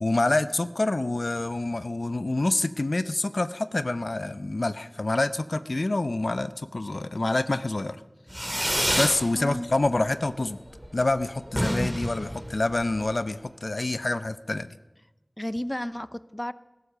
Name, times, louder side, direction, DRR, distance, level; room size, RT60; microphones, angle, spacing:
voice 1, 0.0-8.0 9.0-10.6 10.9-14.8, left 2 dB, 85° left, 13 dB, 0.6 m, -27 dB
Fireworks, 8.3-9.2 9.6-10.1 10.4-10.5 10.8-10.9 11.1-11.2 11.5-13.1, equal, ahead, 2.6 m, -28 dB
voice 2, 9.3-9.7 15.4-16.5, left 1 dB, 20° left, 15 dB, 0.5 m, -32 dB
16.0 x 13.5 x 6.6 m, 1.1 s
wide cardioid pair, 40°, 0 cm